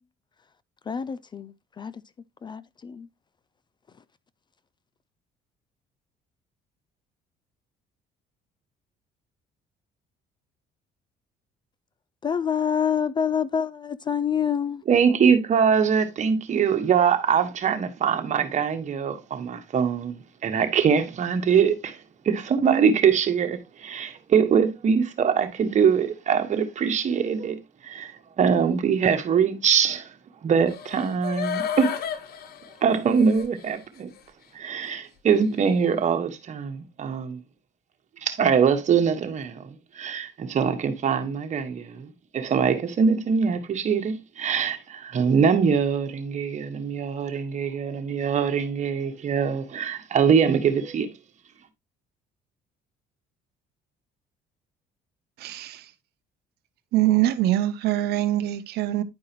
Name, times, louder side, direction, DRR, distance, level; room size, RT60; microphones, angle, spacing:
voice 1, 0.9-1.9 2.4-3.1 12.2-14.8, left 7 dB, 25° left, 0.3 m, -27 dB
voice 2, 14.9-22.0 22.2-28.1 28.4-30.1 30.4-32.0 32.8-34.1 34.5-37.4 38.2-39.7 39.9-51.1, right 6 dB, 45° right, 1.4 m, -23 dB
sound 1, 30.7-33.7 34.2-34.3, left 8 dB, 65° left, 0.9 m, -32 dB
voice 3, 55.4-55.9 56.9-59.0, right 14 dB, 75° right, 0.7 m, -23 dB
10.5 x 4.7 x 2.9 m
cardioid pair, 110°, 17 cm